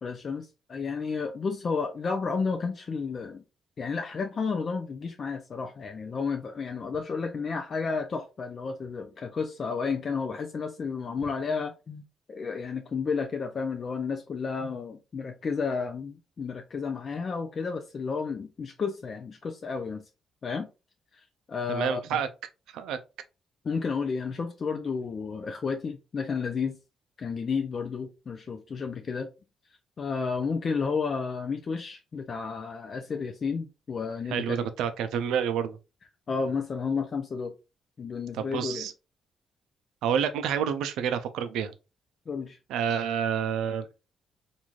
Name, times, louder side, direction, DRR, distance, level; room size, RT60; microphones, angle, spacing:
voice 1, 0.0-3.4 3.8-20.0 20.4-20.7 21.5-22.0 23.6-26.8 27.2-29.3 30.0-34.7 36.3-37.5 38.0-38.9 42.3-42.6, left 5 dB, 45° left, 0.4 m, -32 dB
voice 2, 21.7-22.3 22.7-23.0 34.3-35.8 38.4-38.9 40.0-41.7 42.7-43.9, right 8 dB, 85° right, 0.4 m, -28 dB
3.0 x 2.5 x 2.3 m
cardioid pair, 90°, 0 cm